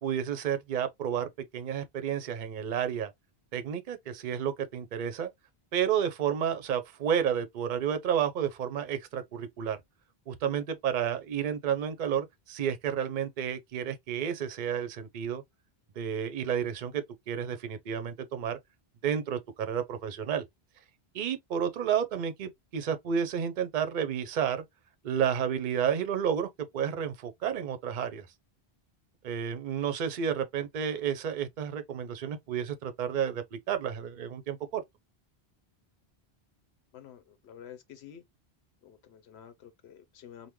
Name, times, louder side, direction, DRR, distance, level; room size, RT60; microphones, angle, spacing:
voice 1, 0.0-3.1 3.5-5.3 5.7-9.8 10.3-15.4 16.0-18.6 19.0-20.4 21.1-24.6 25.0-28.3 29.2-34.8, right 8 dB, 55° right, 0.7 m, -31 dB
voice 2, 36.9-38.2 38.8-40.5, left 9 dB, 85° left, 0.9 m, -50 dB
3.5 x 2.2 x 2.9 m
omnidirectional pair, 1.1 m